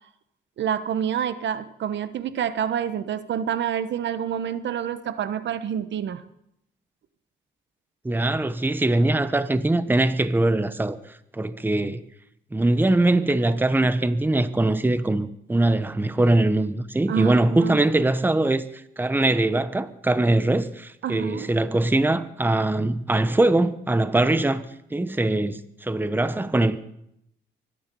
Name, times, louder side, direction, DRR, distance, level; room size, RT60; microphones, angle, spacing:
voice 1, 0.6-6.2 17.1-17.8 21.0-21.5, right 9 dB, 65° right, 1.1 m, -28 dB
voice 2, 8.0-12.0 12.5-18.6 19.0-26.8, right 2 dB, 10° right, 1.0 m, -22 dB
24.5 x 10.5 x 5.4 m
cardioid pair, 90°, 20 cm